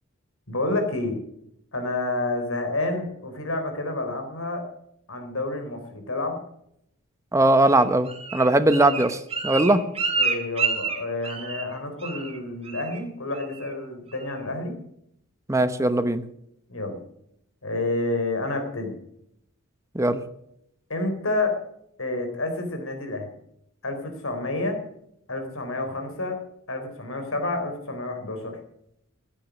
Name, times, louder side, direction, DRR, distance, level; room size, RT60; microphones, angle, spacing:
voice 1, 0.5-1.2 1.7-4.6 5.1-6.4 10.2-14.7 16.7-17.0 17.6-19.0 20.9-21.5 22.0-23.3 23.8-24.8 25.3-26.4 26.7-28.6, left 2 dB, 85° left, 6 dB, 4.0 m, -29 dB
voice 2, 7.3-9.8 15.5-16.2 19.9-20.2, right 1 dB, 15° right, 10 dB, 0.9 m, -20 dB
Bird, 7.7-11.7 12.0-12.4 12.7-13.0 13.3-13.7 14.1-14.2, right 4 dB, 30° right, 2.0 m, -29 dB
15.5 x 10.0 x 6.2 m, 0.73 s
head